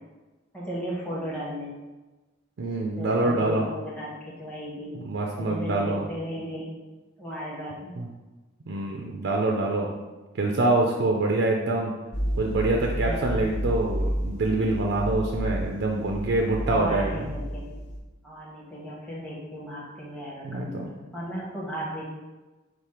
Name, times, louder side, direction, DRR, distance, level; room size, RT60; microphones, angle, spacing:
voice 1, 0.5-1.7 2.9-4.1 4.4-5.0 5.4-6.7 7.2-8.0 13.0-13.5 16.6-17.6 18.2-22.0, equal, 5° left, -7 dB, 0.8 m, -35 dB
voice 2, 2.6-3.7 4.9-6.0 8.0-8.1 8.7-9.9 10.4-11.9 12.4-17.2 20.4-20.9, right 2 dB, 60° right, 0 dB, 0.4 m, -25 dB
sound 1, 12.1-18.0, equal, 35° left, 0.6 m, -31 dB
4.9 x 2.0 x 4.2 m, 1.2 s
head